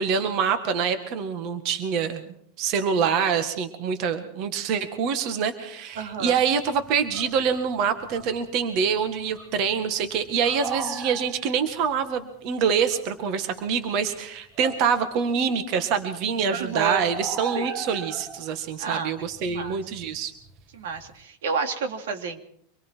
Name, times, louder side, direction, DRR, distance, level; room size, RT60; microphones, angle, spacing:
voice 1, 0.0-2.2 2.6-20.3, right 6 dB, 40° right, 9 dB, 1.7 m, -25 dB
sound 1, 5.9-15.3 15.7-21.1, right 4 dB, 15° right, 1.5 m, -40 dB
voice 2, 6.0-6.4 16.5-17.0 17.5-17.7 18.8-19.8 20.7-22.4, right 5 dB, 90° right, 6 dB, 3.1 m, -30 dB
25.5 x 22.5 x 4.6 m, 0.65 s
supercardioid pair, 175°, 0 cm